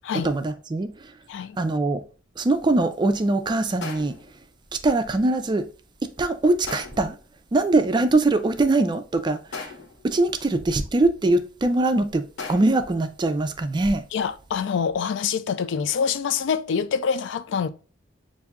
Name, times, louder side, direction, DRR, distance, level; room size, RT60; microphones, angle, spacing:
voice 1, 0.2-0.9 1.6-2.0 2.4-4.2 4.7-5.6 6.2-7.2 7.5-9.7 10.0-14.0, right 2 dB, 25° right, 0.3 m, -22 dB
sound 1, 3.8-4.4 6.7-7.2 9.5-10.1 12.4-13.0, left 4 dB, 85° left, 0.8 m, -37 dB
voice 2, 14.1-17.7, left 6 dB, 70° left, 0.3 m, -25 dB
6.8 x 2.6 x 2.3 m
head